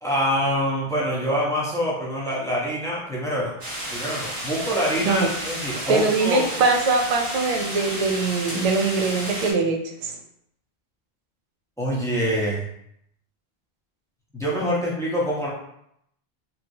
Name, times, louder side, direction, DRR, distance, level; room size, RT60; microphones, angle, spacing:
voice 1, 0.0-3.6 3.9-6.5 11.8-12.7 14.3-15.5, equal, 5° left, -6 dB, 0.7 m, -25 dB
sound 1, 3.6-9.5, right 1 dB, 30° right, 0.9 m, -32 dB
voice 2, 5.9-10.2, right 4 dB, 55° right, 3 dB, 0.4 m, -22 dB
3.0 x 2.8 x 2.6 m, 0.74 s
omnidirectional pair, 1.0 m